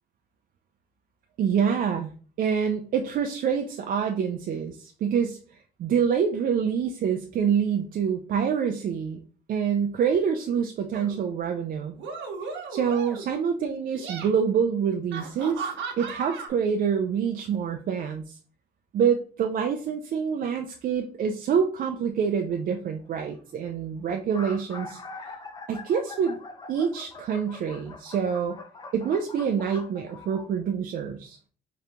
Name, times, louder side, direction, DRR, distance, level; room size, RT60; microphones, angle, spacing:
voice 1, 1.4-2.1 2.4-5.4 5.8-9.2 9.5-11.9 12.7-15.7 16.0-18.4 18.9-25.0 25.7-26.4 26.7-28.6 28.9-31.4, right 7 dB, 50° right, 4 dB, 0.4 m, -26 dB
sound 1, 10.9-11.2 11.9-13.4 13.8-14.3 15.1-16.5, right 5 dB, 85° right, 0.9 m, -36 dB
sound 2, 22.2-22.5 23.4-23.5 23.7-23.8 24.1-30.5, left 3 dB, 20° left, 0.4 m, -43 dB
3.9 x 2.8 x 3.3 m, 0.41 s
cardioid pair, 145°, 19 cm